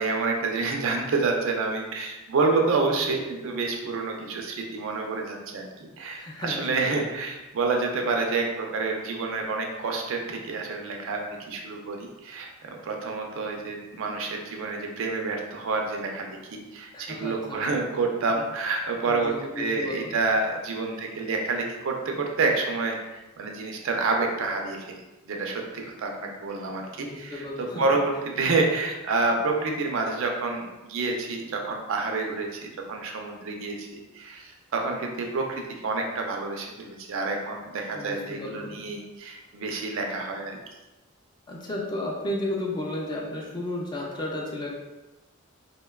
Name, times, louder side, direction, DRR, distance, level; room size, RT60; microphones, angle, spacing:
voice 1, 0.0-24.9 25.3-40.6, right 3 dB, 65° right, 2 dB, 0.4 m, -28 dB
voice 2, 6.1-7.0 16.9-17.6 19.1-20.2 27.0-27.8 37.9-38.8 41.5-44.7, left 1 dB, 20° left, -2 dB, 0.3 m, -33 dB
2.6 x 2.1 x 2.2 m, 1.1 s
head